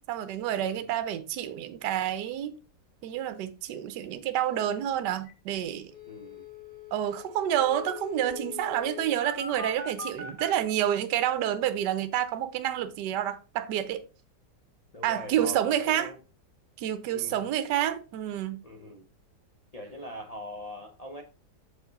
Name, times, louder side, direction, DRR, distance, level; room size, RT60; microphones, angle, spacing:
voice 1, 0.1-2.6 3.0-5.9 6.9-14.0 15.0-16.1 16.8-18.6, right 11 dB, 75° right, 1.2 m, -29 dB
sound 1, 5.2-5.3 5.6-5.7 5.9-10.5, left 5 dB, 10° right, 2.0 m, -41 dB
voice 2, 6.1-6.4 14.9-16.1 17.1-17.3 18.6-19.0 19.7-21.2, left 1 dB, 70° left, 0.3 m, -42 dB
6.7 x 4.9 x 3.9 m
omnidirectional pair, 1.9 m